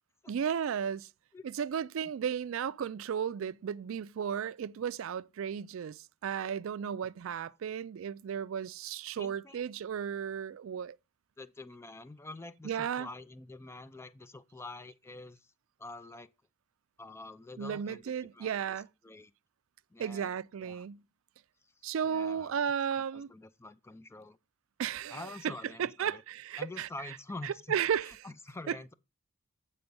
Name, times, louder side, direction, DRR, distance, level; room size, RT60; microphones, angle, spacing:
voice 1, 0.3-1.1 1.4-11.0 12.6-13.1 17.6-18.9 20.0-21.0 21.8-23.3 24.8-25.5 25.8-26.9 27.4-28.1 28.7-28.8, right 8 dB, 65° right, 0.3 m, -34 dB
voice 2, 9.2-9.6 11.4-15.5 15.8-16.3 17.0-19.3 19.9-20.3 20.6-20.9 21.6-22.6 23.1-24.4 25.1-26.2 26.6-27.8 28.0-28.9, left 2 dB, 10° left, 0.3 m, -47 dB
8.2 x 4.3 x 5.3 m
head